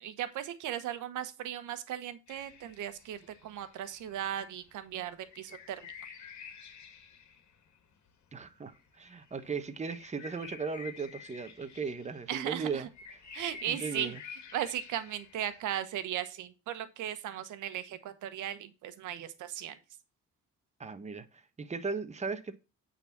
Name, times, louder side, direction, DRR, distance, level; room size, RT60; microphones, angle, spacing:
voice 1, 0.0-5.9 12.3-12.9 13.3-14.1 14.5-19.8, right 11 dB, 85° right, 1.2 m, -37 dB
sound 1, 2.3-15.7, left 7 dB, 70° left, 2.0 m, -51 dB
voice 2, 8.3-12.9 13.7-14.2 20.8-22.6, right 5 dB, 25° right, 1.1 m, -37 dB
8.8 x 4.1 x 5.8 m
cardioid pair, 90°, 30 cm